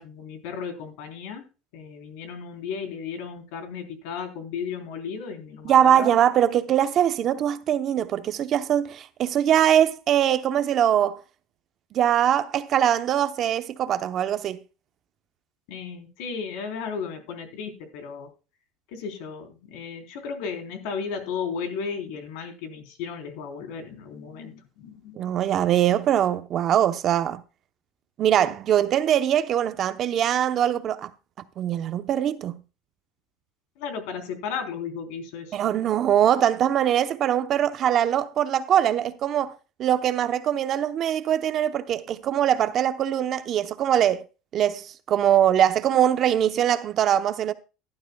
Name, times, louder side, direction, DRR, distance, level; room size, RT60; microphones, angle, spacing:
voice 1, 0.0-1.4 1.7-6.2 15.7-18.3 18.9-25.3 33.8-35.6, left 6 dB, 75° left, 3.6 m, -34 dB
voice 2, 5.6-11.2 11.9-14.6 25.2-27.4 28.2-31.1 31.6-32.6 35.5-39.5 39.8-44.2 44.5-47.5, right 10 dB, 40° right, 0.8 m, -22 dB
15.5 x 12.0 x 2.3 m
cardioid pair, 150°, 0 cm